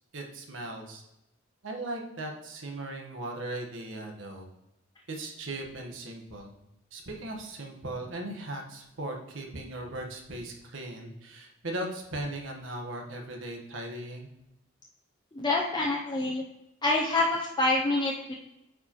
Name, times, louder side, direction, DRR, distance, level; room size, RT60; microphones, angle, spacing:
voice 1, 0.1-1.0 1.6-4.5 5.1-6.5 6.9-14.3, right 1 dB, 80° right, 2 dB, 1.2 m, -38 dB
voice 2, 15.3-16.4 16.8-18.3, left 2 dB, 20° left, -1 dB, 0.5 m, -26 dB
8.6 x 4.7 x 2.9 m, 0.89 s
head